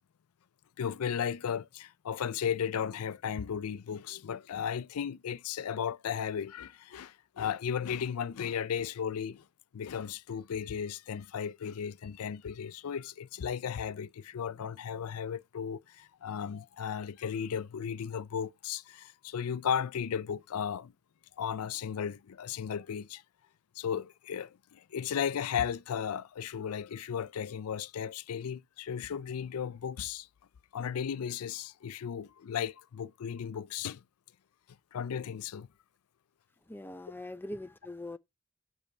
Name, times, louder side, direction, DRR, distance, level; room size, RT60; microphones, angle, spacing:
voice 1, 0.8-9.4 9.7-20.9 21.4-23.2 23.8-30.3 30.7-34.0 34.9-35.7, left 8 dB, 85° left, 0.4 m, -35 dB
voice 2, 36.7-38.2, left 1 dB, 10° left, 0.4 m, -42 dB
7.1 x 5.3 x 5.4 m
head